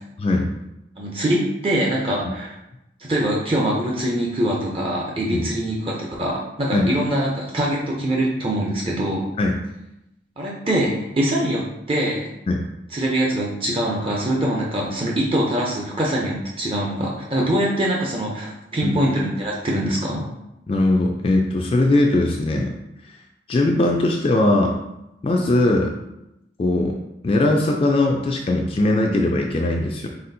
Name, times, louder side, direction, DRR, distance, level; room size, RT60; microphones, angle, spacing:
voice 1, 0.2-0.5 5.3-5.4 6.7-6.9 9.4-9.5 12.5-12.6 18.8-19.0 20.7-22.7 23.0-23.2 23.5-24.8 25.2-26.0 26.6-27.0 27.2-30.1, left 2 dB, 30° left, 1 dB, 0.3 m, -20 dB
voice 2, 1.0-2.6 3.0-9.3 10.4-11.6 11.9-12.3 12.9-20.3, right 1 dB, 30° right, -3 dB, 0.5 m, -23 dB
4.2 x 3.9 x 2.6 m, 0.88 s
head